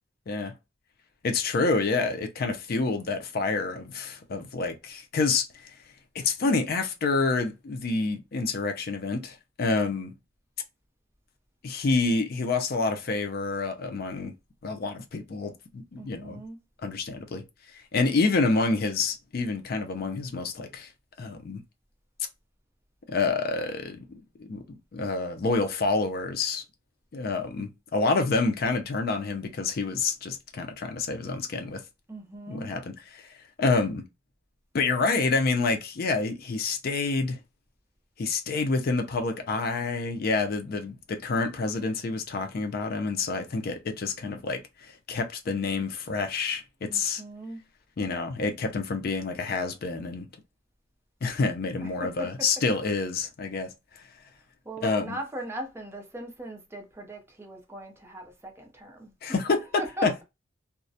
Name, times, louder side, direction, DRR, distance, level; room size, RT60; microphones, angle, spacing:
voice 1, 1.2-5.7 6.1-10.1 11.6-14.3 14.6-16.4 16.8-17.4 17.9-20.9 21.2-21.6 23.1-26.6 27.1-31.8 32.5-33.3 33.6-34.0 34.7-37.4 38.2-44.6 45.1-47.2 48.0-50.3 51.2-53.7 54.8-55.2 59.2-60.2, left 3 dB, 50° left, 0.4 m, -28 dB
voice 2, 16.0-16.6 32.1-32.7 46.9-47.6 51.8-52.3 54.7-59.1 59.8-60.2, right 1 dB, 15° right, 0.4 m, -39 dB
2.3 x 2.0 x 2.6 m
head